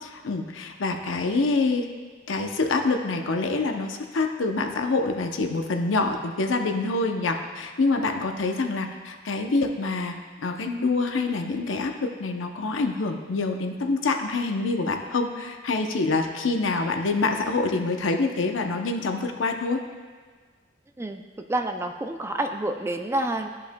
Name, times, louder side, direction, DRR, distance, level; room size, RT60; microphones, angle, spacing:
voice 1, 0.0-1.9 2.3-10.2 10.4-19.8, left 3 dB, 80° left, 4 dB, 0.7 m, -26 dB
voice 2, 21.5-23.5, right 1 dB, 15° right, 5 dB, 0.3 m, -28 dB
13.5 x 5.5 x 2.2 m, 1.5 s
head